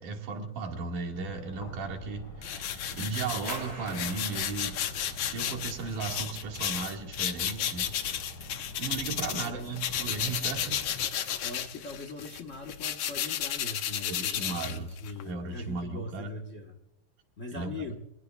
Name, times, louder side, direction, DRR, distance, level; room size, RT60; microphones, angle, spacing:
voice 1, 0.0-4.8 5.3-7.9 8.4-8.5 8.8-10.8 14.1-14.9 15.2-16.3 17.5-17.9, right 4 dB, 80° right, 2 dB, 3.5 m, -36 dB
sound 1, 1.1-11.1, left 1 dB, 45° left, 2.7 m, -46 dB
sound 2, 2.4-9.5 9.8-15.2, left 10 dB, 65° left, 1.6 m, -33 dB
sound 3, 3.5-8.8, right 1 dB, 25° right, 4.2 m, -48 dB
voice 2, 9.3-9.7 11.4-16.7 17.4-18.0, left 2 dB, 90° left, 4 dB, 0.6 m, -41 dB
23.0 x 21.0 x 2.4 m, 0.94 s
omnidirectional pair, 3.6 m